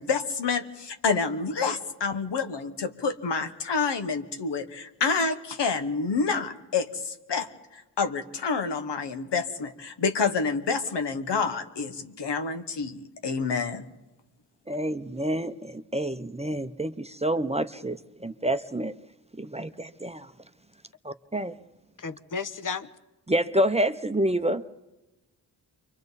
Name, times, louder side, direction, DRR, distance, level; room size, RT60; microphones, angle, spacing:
voice 1, 0.0-13.8, left 5 dB, 85° left, 7 dB, 1.4 m, -28 dB
voice 2, 14.7-18.9 19.4-20.3 21.0-21.5 23.3-24.6, right 1 dB, 15° right, 10 dB, 0.7 m, -28 dB
voice 3, 22.0-22.9, left 5 dB, 50° left, 12 dB, 1.0 m, -33 dB
28.5 x 24.0 x 4.1 m, 1.0 s
cardioid pair, 65°, 41 cm